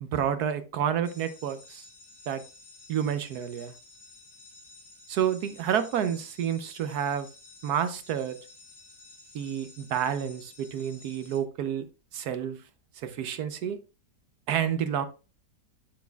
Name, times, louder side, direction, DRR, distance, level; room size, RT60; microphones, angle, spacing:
voice 1, 0.0-1.9 2.3-2.4 2.9-3.7 5.1-7.3 7.6-8.4 9.3-11.9 12.1-12.6 13.0-13.8 14.5-15.1, right 9 dB, 70° right, 1.1 m, -29 dB
sound 1, 1.0-11.4, left 3 dB, 15° left, 2.5 m, -52 dB
8.3 x 8.1 x 2.2 m
omnidirectional pair, 1.8 m